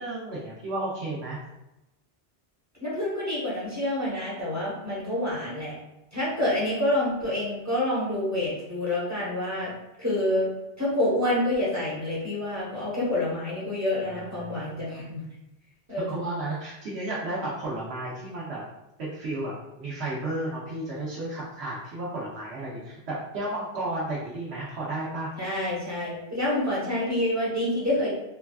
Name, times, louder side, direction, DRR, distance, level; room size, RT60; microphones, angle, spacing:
voice 1, 0.0-1.4 14.0-14.7 16.0-18.6 19.0-25.3, right 2 dB, 80° right, -7 dB, 1.0 m, -33 dB
voice 2, 2.8-5.8 6.1-9.7 10.0-10.5 10.8-15.2 15.9-16.4 25.4-28.1, left 1 dB, 15° right, -9 dB, 0.9 m, -27 dB
3.3 x 2.3 x 2.3 m, 0.93 s
omnidirectional pair, 1.1 m